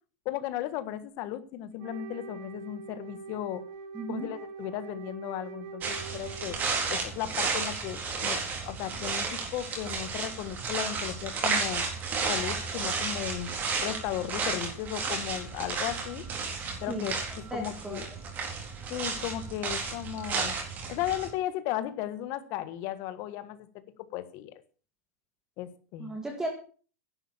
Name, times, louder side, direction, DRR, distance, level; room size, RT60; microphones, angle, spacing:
voice 1, 0.2-3.6 4.1-6.6 6.9-8.4 8.7-11.8 12.3-13.5 13.8-16.2 16.8-17.2 17.5-18.1 18.9-20.5 20.9-23.7 24.1-24.5 25.6-26.2, left 12 dB, 40° left, 12 dB, 1.5 m, -35 dB
Wind instrument woodwind instrument, 1.8-6.9, right 4 dB, 45° right, 6.9 m, -43 dB
voice 2, 3.9-4.3 16.9-17.1 17.5-18.0 26.0-26.5, right 2 dB, 5° right, 2 dB, 2.0 m, -35 dB
sound 1, 5.8-21.3, right 4 dB, 25° right, 4.0 m, -33 dB
11.0 x 9.1 x 7.3 m, 0.40 s
supercardioid pair, 155°, 7 cm